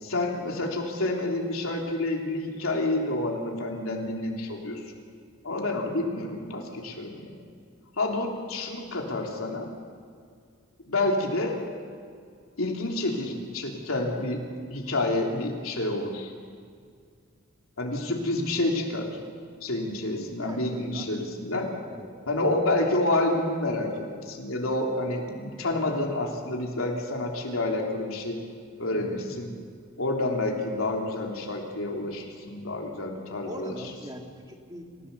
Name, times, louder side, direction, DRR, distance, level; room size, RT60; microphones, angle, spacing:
voice 1, 0.0-4.8 5.4-7.4 8.0-9.7 10.9-11.6 12.6-14.4 14.7-16.3 17.8-19.1 19.6-21.7 22.3-28.4 28.8-29.5 30.0-33.7, left 2 dB, 75° left, 0 dB, 3.3 m, -29 dB
voice 2, 20.4-21.1 21.9-22.1 22.4-22.5 28.9-29.6 33.4-35.1, right 1 dB, 20° right, 2 dB, 2.0 m, -41 dB
28.0 x 15.5 x 6.9 m, 2.2 s
head